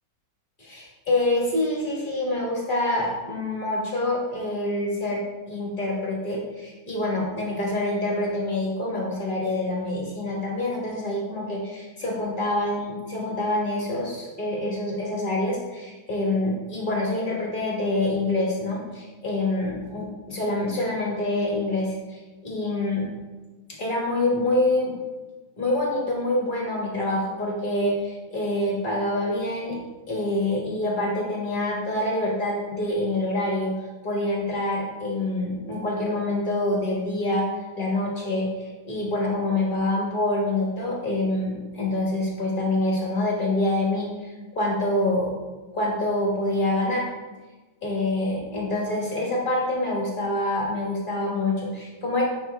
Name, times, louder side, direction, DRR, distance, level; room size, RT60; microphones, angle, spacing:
voice 1, 0.6-5.2 5.5-23.0 23.8-24.9 25.6-29.8 30.1-33.7 34.0-37.5 37.8-45.3 45.7-47.0 47.8-52.2, left 1 dB, 30° left, -3 dB, 1.5 m, -26 dB
7.3 x 5.2 x 3.4 m, 1.2 s
omnidirectional pair, 2.0 m